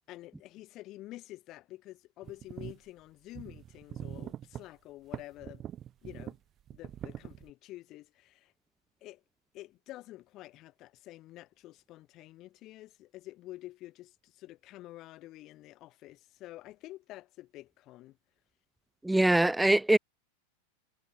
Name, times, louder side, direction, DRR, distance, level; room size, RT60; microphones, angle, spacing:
voice 1, 0.1-5.6 6.0-6.4 6.7-8.5 9.0-9.2 9.5-18.2, left 16 dB, 35° left, 7.6 m, -48 dB
sound 1, 2.2-2.8 3.3-4.6 5.1-6.4 6.7-7.5, right 11 dB, 30° right, 0.9 m, -42 dB
voice 2, 19.0-20.0, right 1 dB, 5° right, 0.5 m, -23 dB
figure-of-eight pair, 90°, 0 cm